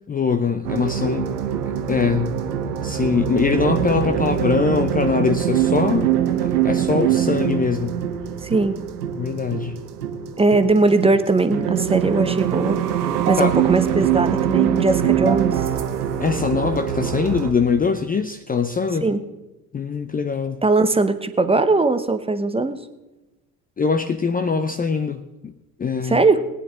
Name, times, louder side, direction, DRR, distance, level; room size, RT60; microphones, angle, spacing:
voice 1, 0.1-1.3 1.9-2.4 2.8-6.1 6.4-8.0 9.2-9.8 13.4-13.6 16.2-19.1 19.7-20.6 23.8-25.5 25.8-26.2, left 5 dB, 20° left, 9 dB, 0.6 m, -22 dB
sound 1, 0.6-17.5, right 10 dB, 80° right, 1.1 m, -23 dB
voice 2, 8.4-8.8 10.4-12.8 13.3-15.6 19.0-19.2 20.6-22.8 26.0-26.4, right 3 dB, 10° right, 10 dB, 0.9 m, -19 dB
19.0 x 9.6 x 3.7 m, 1.0 s
hypercardioid pair, 65°, 47 cm